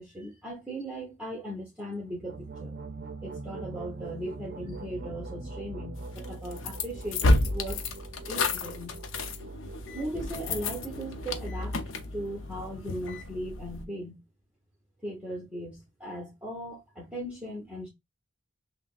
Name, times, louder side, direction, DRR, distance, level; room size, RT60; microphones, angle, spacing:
voice 1, 0.0-2.7 3.2-7.8 8.3-9.0 9.9-11.8 12.1-14.2 15.0-17.9, right 1 dB, 5° right, 0.9 m, -38 dB
sound 1, 2.0-12.7, right 2 dB, 55° right, 0.5 m, -42 dB
sound 2, 6.2-13.9, left 2 dB, 80° left, 0.6 m, -30 dB
5.7 x 2.1 x 2.4 m
head